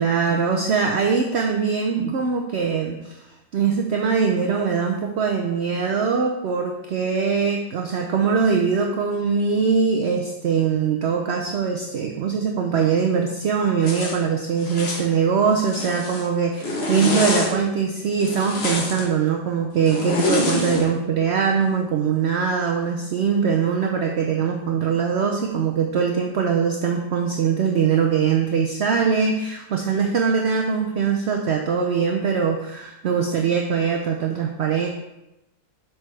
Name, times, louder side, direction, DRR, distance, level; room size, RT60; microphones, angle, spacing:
voice 1, 0.0-3.3 3.5-34.9, right 6 dB, 60° right, 2 dB, 0.8 m, -22 dB
Zipper (clothing), 13.8-14.2 14.6-15.1 15.5-16.3 16.6-17.5 18.2-19.0 19.9-20.8, left 2 dB, 50° left, 1.3 m, -25 dB
7.8 x 6.1 x 3.2 m, 0.93 s
omnidirectional pair, 1.5 m